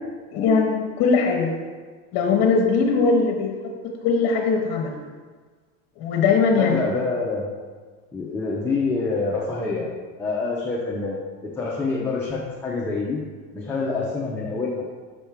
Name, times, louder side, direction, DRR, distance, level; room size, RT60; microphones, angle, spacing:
voice 1, 0.3-1.5 2.1-3.7 4.0-5.0 6.0-6.8, left 4 dB, 50° left, 1 dB, 0.9 m, -20 dB
voice 2, 6.6-7.5 8.1-9.9 10.2-13.2 13.5-14.9, left 3 dB, 5° left, -5 dB, 0.5 m, -26 dB
6.4 x 4.4 x 3.5 m, 1.5 s
supercardioid pair, 145°, 31 cm